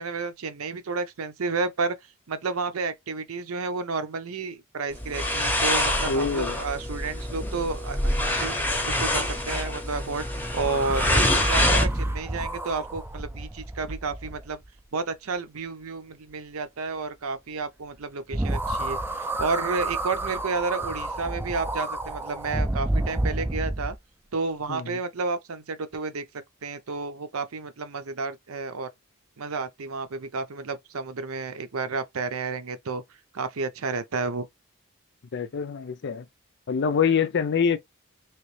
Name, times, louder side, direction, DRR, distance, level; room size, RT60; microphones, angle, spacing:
voice 1, 0.0-2.0 2.3-10.2 10.5-14.6 14.9-24.0 24.3-26.3 26.6-28.9 29.4-33.0 33.3-34.5, right 4 dB, 75° right, 0.7 m, -31 dB
sound 1, 4.9-11.9, left 1 dB, 10° left, 0.8 m, -26 dB
voice 2, 6.1-6.5 24.7-25.0 35.3-36.3 36.7-37.8, left 6 dB, 55° left, 0.5 m, -25 dB
sound 2, 10.5-14.8 18.3-24.0, right 1 dB, 10° right, 0.4 m, -29 dB
3.1 x 3.0 x 3.2 m
head